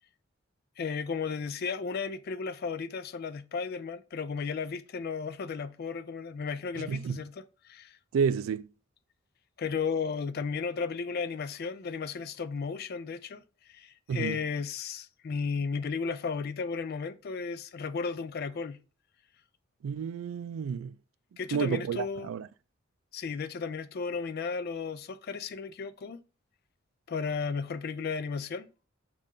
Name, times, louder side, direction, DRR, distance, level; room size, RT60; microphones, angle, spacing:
voice 1, 0.8-8.0 9.6-18.8 21.4-22.3 23.1-26.2 27.1-28.7, left 5 dB, 50° left, 0.4 m, -34 dB
voice 2, 6.8-7.2 8.1-8.7 14.1-14.4 19.8-21.0 21.5-22.5, right 6 dB, 85° right, 0.3 m, -30 dB
5.4 x 2.5 x 3.6 m
head